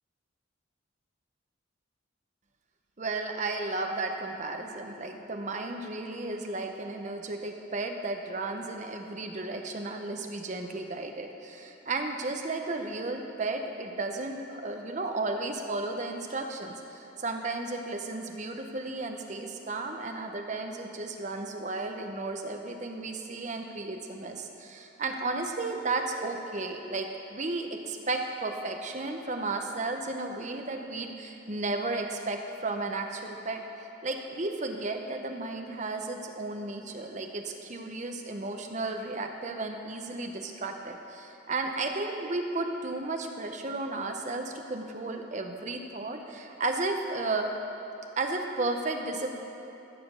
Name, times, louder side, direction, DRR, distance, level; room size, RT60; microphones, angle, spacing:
voice 1, 3.0-33.6 34.0-47.5 48.2-49.3, right 2 dB, 35° right, 4 dB, 0.8 m, -34 dB
15.0 x 5.1 x 6.7 m, 2.9 s
head